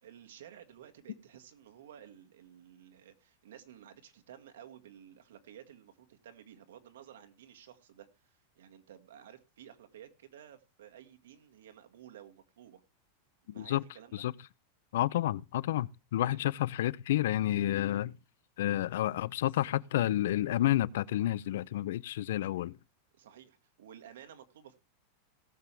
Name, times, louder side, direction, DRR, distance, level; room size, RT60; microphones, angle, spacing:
voice 1, 0.0-12.8 13.5-14.3 16.2-16.4 23.2-24.8, right 10 dB, 85° right, 1.9 m, -54 dB
voice 2, 14.9-18.2 18.6-22.8, left 13 dB, 75° left, 0.5 m, -30 dB
17.5 x 7.5 x 3.4 m
supercardioid pair, 150°, 0 cm